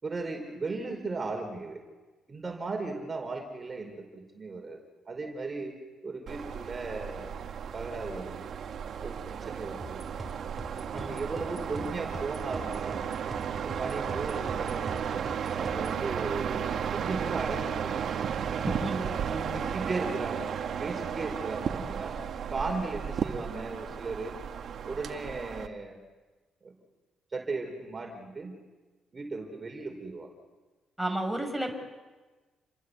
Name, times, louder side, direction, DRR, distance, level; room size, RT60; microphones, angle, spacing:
voice 1, 0.0-1.8 2.3-4.8 5.1-5.7 6.0-7.3 7.7-8.5 9.0-10.0 10.9-13.0 13.6-15.1 15.5-18.3 19.5-20.5 20.8-22.2 22.5-24.3 24.8-26.0 26.6-26.7 27.3-28.5 29.1-30.3, right 3 dB, 30° right, 3 dB, 5.0 m, -36 dB
sound 1, 6.3-25.7, right 7 dB, 60° right, 1.9 m, -34 dB
sound 2, 9.8-16.0, right 2 dB, 15° right, 5.3 m, -44 dB
voice 2, 18.6-19.6 31.0-31.7, right 1 dB, ahead, 5 dB, 6.1 m, -33 dB
30.0 x 23.0 x 8.3 m, 1.3 s
cardioid pair, 90°, 0 cm